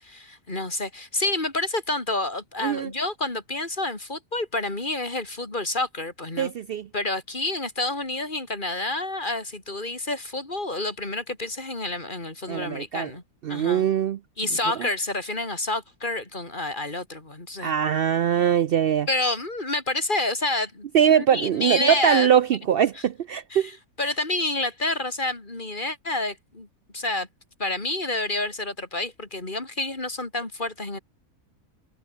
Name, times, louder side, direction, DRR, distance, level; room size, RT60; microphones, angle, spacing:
voice 1, 0.0-6.5 6.9-13.2 13.5-13.9 14.4-17.7 19.1-22.3 22.9-23.0 23.5-26.7 26.9-27.3 27.6-31.0, left 2 dB, 30° left, 3.3 m, -29 dB
voice 2, 6.4-6.9 12.5-13.1 13.4-14.2 17.6-19.1 20.9-23.7, right 9 dB, 85° right, 0.5 m, -22 dB
omnidirectional pair, 1.6 m